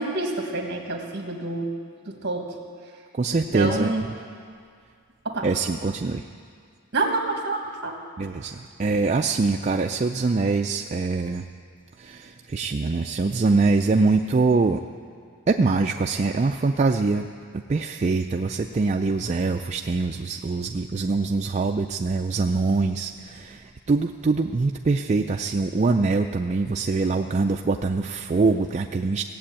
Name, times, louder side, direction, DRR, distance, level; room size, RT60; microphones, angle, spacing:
voice 1, 0.0-1.7 2.1-2.5 3.3-4.1 5.2-5.5 6.9-8.0, right 2 dB, 50° right, 2 dB, 1.6 m, -27 dB
voice 2, 3.1-3.9 5.4-6.2 8.2-11.4 12.0-14.8 15.5-17.3 17.5-29.2, right 3 dB, 30° right, 3 dB, 0.3 m, -23 dB
17.0 x 7.7 x 8.7 m, 2.2 s
head